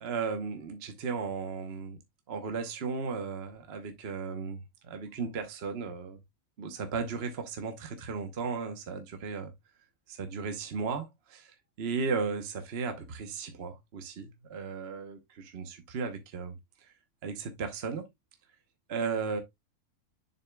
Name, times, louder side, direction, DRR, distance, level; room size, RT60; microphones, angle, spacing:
voice 1, 0.0-2.0 2.3-6.2 6.6-9.5 10.1-16.9 17.2-18.1 18.9-19.4, right 5 dB, 50° right, 1.1 m, -35 dB
6.9 x 6.8 x 2.2 m
omnidirectional pair, 1.6 m